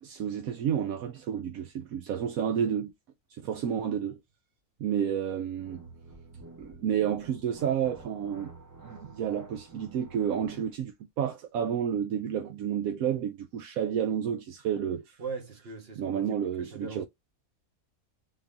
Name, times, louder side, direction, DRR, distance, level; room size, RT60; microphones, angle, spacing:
voice 1, 0.0-2.9 3.4-4.2 4.8-5.8 6.6-8.5 8.8-15.2 16.0-17.0, right 8 dB, 85° right, 1.1 m, -30 dB
sound 1, 5.5-10.7, right 3 dB, 20° right, 0.6 m, -50 dB
voice 2, 15.2-17.0, right 4 dB, 45° right, 1.2 m, -40 dB
3.8 x 2.7 x 3.5 m
omnidirectional pair, 1.5 m